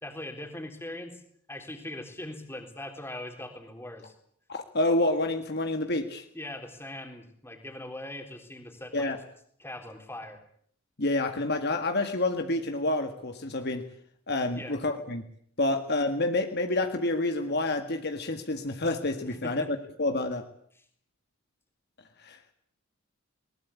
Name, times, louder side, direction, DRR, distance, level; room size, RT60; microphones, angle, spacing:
voice 1, 0.0-1.2 1.5-4.1 6.3-9.1 9.6-10.4 14.5-14.8 19.3-19.7, left 1 dB, 10° left, 4 dB, 3.6 m, -41 dB
voice 2, 4.5-6.3 8.9-9.2 11.0-13.8 14.3-15.2 15.6-20.4 22.2-22.4, left 2 dB, 50° left, 6 dB, 1.9 m, -28 dB
21.5 x 20.0 x 8.5 m, 0.64 s
head